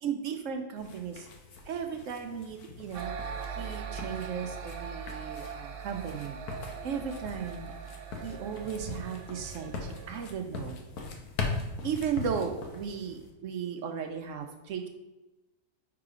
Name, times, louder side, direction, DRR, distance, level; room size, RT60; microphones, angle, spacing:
voice 1, 0.0-1.3 1.7-3.1 3.5-6.4 6.8-7.7 8.2-10.8 11.8-14.9, right 7 dB, 70° right, 5 dB, 0.7 m, -35 dB
sound 1, 0.8-13.3, left 4 dB, 65° left, 1.3 m, -41 dB
sound 2, 2.9-10.4, right 6 dB, 85° right, 1.4 m, -41 dB
4.8 x 4.8 x 4.8 m, 1.1 s
omnidirectional pair, 1.8 m